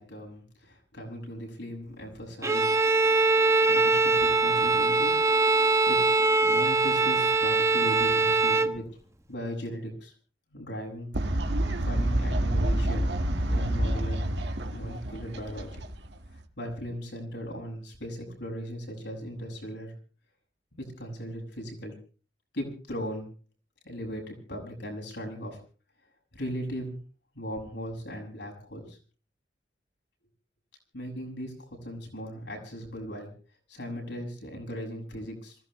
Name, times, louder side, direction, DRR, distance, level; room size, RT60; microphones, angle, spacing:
voice 1, 0.0-2.8 3.7-5.6 5.9-6.0 6.4-8.8 9.3-10.1 10.5-11.1 11.8-13.1 13.5-14.3 14.7-15.8 16.6-19.9 21.0-21.9 22.5-23.3 23.8-25.6 26.3-26.9 27.4-29.0 30.9-33.3 33.7-35.6, equal, 75° left, 0 dB, 6.9 m, -38 dB
Bowed string instrument, 2.4-8.8, right 3 dB, 15° right, 1.0 m, -22 dB
Fowl, 11.1-16.4, right 1 dB, 70° right, 1.9 m, -28 dB
26.5 x 16.5 x 3.3 m, 0.41 s
head